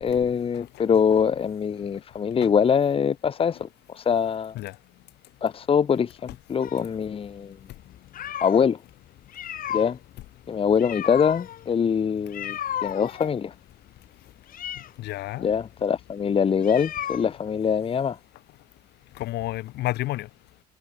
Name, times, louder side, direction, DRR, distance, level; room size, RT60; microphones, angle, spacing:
voice 1, 0.0-4.6 5.4-7.6 8.4-8.8 9.7-10.0 10.5-13.5 15.4-18.2, left 7 dB, 35° left, 1.0 m, -23 dB
sound 1, 6.6-8.7 9.2-17.6, left 10 dB, 55° left, 3.6 m, -35 dB
voice 2, 15.0-15.5 19.2-20.3, left 17 dB, 80° left, 2.1 m, -31 dB
cardioid pair, 110°, 17 cm